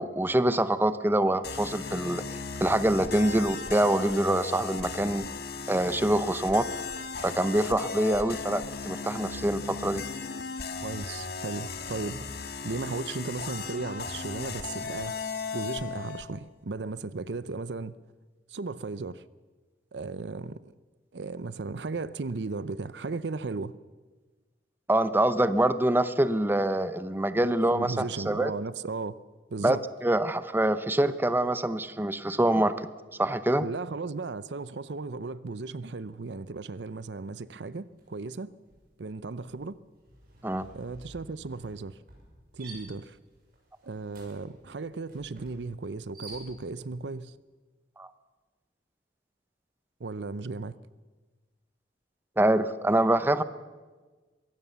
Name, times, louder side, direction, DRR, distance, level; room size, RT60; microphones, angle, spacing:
voice 1, 0.0-2.2 2.6-5.3 5.7-6.7 7.2-10.0 24.9-28.5 29.6-29.8 30.0-32.9 33.2-33.6 40.4-40.7 48.0-48.1 52.4-53.4, right 1 dB, 10° right, 0.7 m, -25 dB
sound 1, 1.4-16.3, left 4 dB, 65° left, 1.7 m, -36 dB
voice 2, 10.8-17.9 18.5-19.2 19.9-20.7 21.1-23.7 27.7-29.2 29.5-29.8 33.6-38.5 39.0-39.8 40.7-42.0 42.5-43.2 43.8-47.3 50.0-50.7, right 3 dB, 75° right, 0.6 m, -36 dB
sound 2, 37.9-38.2 38.5-46.9, right 2 dB, 55° right, 6.5 m, -51 dB
22.5 x 16.5 x 7.0 m
head